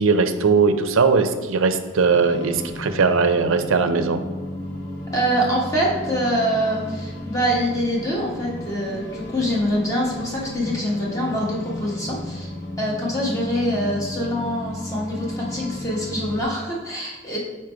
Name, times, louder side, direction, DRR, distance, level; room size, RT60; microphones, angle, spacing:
voice 1, 0.0-4.2, right 4 dB, 80° right, 9 dB, 0.5 m, -19 dB
sound 1, 2.0-16.4, left 1 dB, 50° left, 1.1 m, -33 dB
voice 2, 5.1-12.5 12.8-17.4, equal, 15° left, -4 dB, 1.2 m, -24 dB
4.9 x 4.4 x 4.6 m, 1.2 s
head